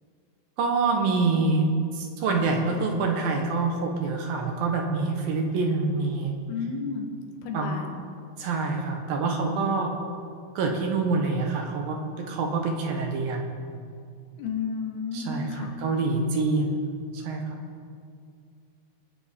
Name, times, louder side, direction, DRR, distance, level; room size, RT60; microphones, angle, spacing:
voice 1, 0.6-1.7 1.9-6.3 7.5-7.8 8.4-9.9 10.6-13.4 15.1-16.9 17.1-17.6, right 3 dB, 75° right, 2 dB, 2.9 m, -26 dB
voice 2, 6.5-7.1 7.4-7.9 14.4-15.8, left 5 dB, 80° left, 3 dB, 3.0 m, -32 dB
22.5 x 9.0 x 3.6 m, 2.3 s
omnidirectional pair, 4.4 m